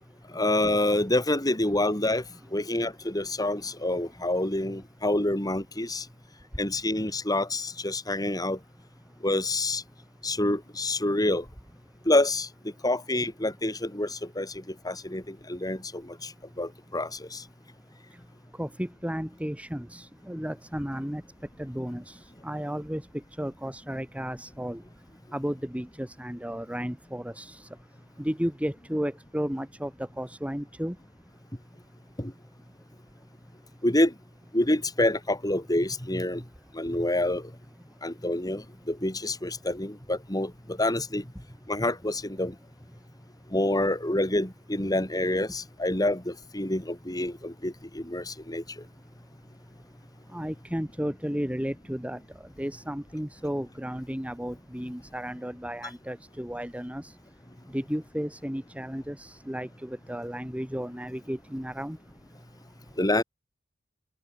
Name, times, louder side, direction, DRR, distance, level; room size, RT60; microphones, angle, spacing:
voice 1, 0.3-2.2 2.5-6.0 6.6-8.6 9.2-9.8 10.2-11.4 12.1-12.5 12.8-16.3 16.6-17.4 32.2-32.3 33.8-34.1 34.5-36.4 36.7-37.4 38.0-41.2 41.7-42.5 43.5-48.6 63.0-63.2, left 1 dB, 20° left, 4.3 m, -27 dB
voice 2, 18.6-21.2 21.6-22.1 22.4-23.0 23.4-24.8 25.3-27.6 28.2-29.9 30.2-30.9 50.3-52.2 52.6-57.0 57.7-62.0, equal, 5° right, 2.8 m, -33 dB
open air
head